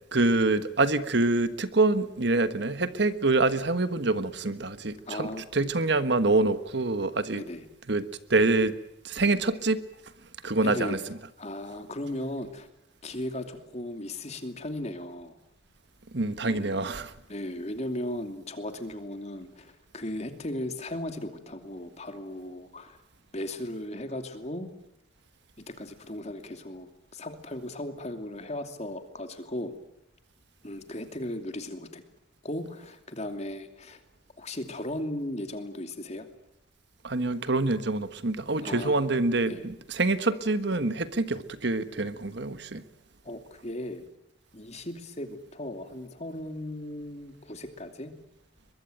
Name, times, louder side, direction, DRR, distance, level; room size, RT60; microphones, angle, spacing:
voice 1, 0.1-7.4 7.9-8.7 9.0-9.8 10.4-11.0 16.1-17.1 37.0-42.8, right 2 dB, 60° right, 12 dB, 1.4 m, -26 dB
voice 2, 5.1-5.7 7.3-7.7 10.6-11.0 11.4-12.7 13.0-15.3 16.4-16.8 17.3-23.0 23.3-24.7 25.8-29.7 30.6-32.0 32.4-34.0 34.4-36.3 38.6-39.1 39.5-39.6 43.2-44.1 44.5-48.1, left 1 dB, 35° left, 7 dB, 2.8 m, -36 dB
22.5 x 22.5 x 9.2 m, 0.82 s
head